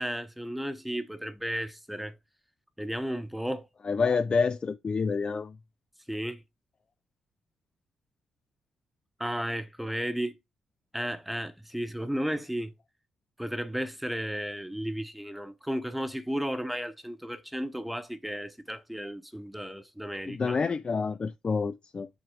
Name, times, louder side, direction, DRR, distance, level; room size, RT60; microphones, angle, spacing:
voice 1, 0.0-2.1 2.8-3.7 6.1-6.4 9.2-10.4 10.9-12.7 13.4-20.6, equal, 5° right, 1.0 m, -34 dB
voice 2, 3.9-5.5 20.3-22.1, left 5 dB, 40° left, 0.4 m, -28 dB
6.2 x 3.7 x 4.7 m
hypercardioid pair, 45°, 2 cm